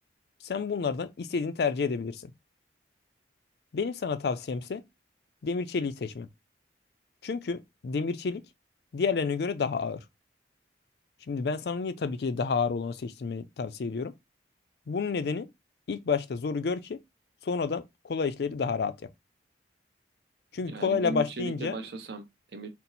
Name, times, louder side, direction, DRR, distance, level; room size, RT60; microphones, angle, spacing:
voice 1, 0.4-2.3 3.7-4.8 5.4-6.3 7.2-8.4 8.9-10.0 11.3-14.1 14.9-15.5 15.9-17.0 17.4-19.1 20.5-21.8, left 5 dB, 60° left, 0.4 m, -30 dB
voice 2, 20.7-22.7, right 2 dB, 65° right, 0.7 m, -37 dB
4.2 x 2.0 x 3.9 m
head